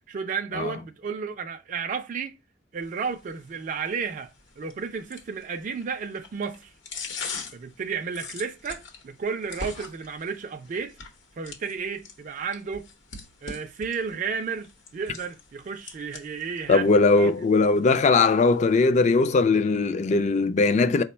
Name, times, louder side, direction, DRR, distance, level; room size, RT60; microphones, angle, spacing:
voice 1, 0.1-2.4 2.7-6.7 7.5-11.0 11.4-12.9 13.4-16.9 17.2-17.3, right 5 dB, 45° right, 0.3 m, -32 dB
sound 1, 2.8-18.8, left 4 dB, 85° left, 0.8 m, -43 dB
voice 2, 16.7-21.0, left 3 dB, 40° left, 0.3 m, -20 dB
4.3 x 2.1 x 4.1 m
head